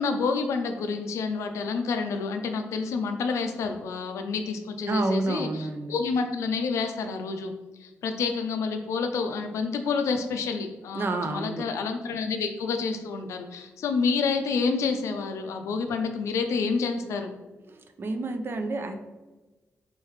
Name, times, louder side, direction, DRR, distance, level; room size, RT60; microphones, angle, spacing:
voice 1, 0.0-7.5 7.8-17.3, left 4 dB, 90° left, 6 dB, 0.4 m, -28 dB
voice 2, 4.9-6.0 10.9-11.6 17.7-19.0, right 2 dB, 50° right, 7 dB, 0.5 m, -29 dB
3.4 x 3.2 x 3.2 m, 1.2 s
cardioid pair, 65°, 5 cm